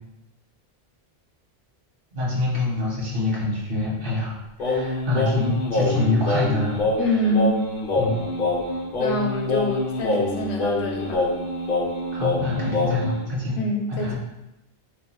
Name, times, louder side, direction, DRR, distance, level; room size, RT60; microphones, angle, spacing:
voice 1, 2.1-4.3 4.6-6.8 8.0-8.2 12.1-13.5 13.9-14.2, left 2 dB, 60° right, -5 dB, 1.2 m, -25 dB
Singing, 4.6-13.2, left 2 dB, 50° left, 0.9 m, -25 dB
voice 2, 7.0-7.7 9.0-11.3 13.6-14.2, left 1 dB, 90° left, 1 dB, 0.9 m, -25 dB
2.9 x 2.3 x 4.2 m, 0.93 s
omnidirectional pair, 1.1 m